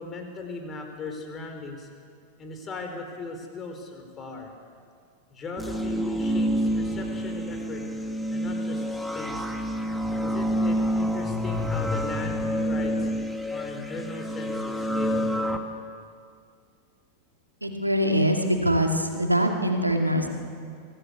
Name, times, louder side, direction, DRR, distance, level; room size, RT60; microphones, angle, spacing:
voice 1, 0.0-1.9 2.4-4.5 5.3-7.8 8.3-9.5 10.2-13.1 13.5-15.3, left 3 dB, 25° left, 4 dB, 4.3 m, -38 dB
sound 1, 5.6-15.6, equal, 5° left, 1.7 m, -28 dB
voice 2, 17.6-20.3, equal, 85° right, 3 dB, 2.4 m, -23 dB
24.0 x 17.0 x 8.4 m, 2.2 s
figure-of-eight pair, 90°, 0 cm